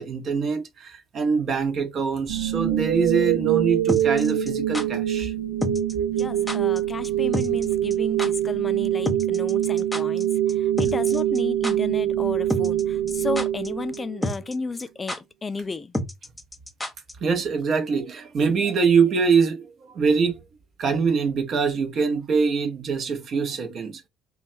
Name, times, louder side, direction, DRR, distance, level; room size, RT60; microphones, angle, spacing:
voice 1, 0.0-5.3 17.2-19.7 19.9-20.4 20.8-24.0, right 5 dB, 50° right, 0.8 m, -23 dB
sound 1, 2.3-14.3, right 11 dB, 80° right, 0.5 m, -24 dB
sound 2, 3.9-4.9 5.6-5.9 6.2-6.3 6.5-6.8 7.0-7.1 7.3-7.7 7.9-8.3 9.1-10.2 10.5-10.6 10.8-11.4 11.6-11.7 12.5-12.8 13.1-13.7 13.9-14.0 14.2-14.5 14.8-14.9 15.1-15.2 15.9-17.1 17.4-17.5, left 1 dB, 10° left, 0.9 m, -29 dB
voice 2, 6.1-15.9, left 4 dB, 30° left, 0.3 m, -33 dB
3.0 x 2.2 x 2.7 m
hypercardioid pair, 60°, 0 cm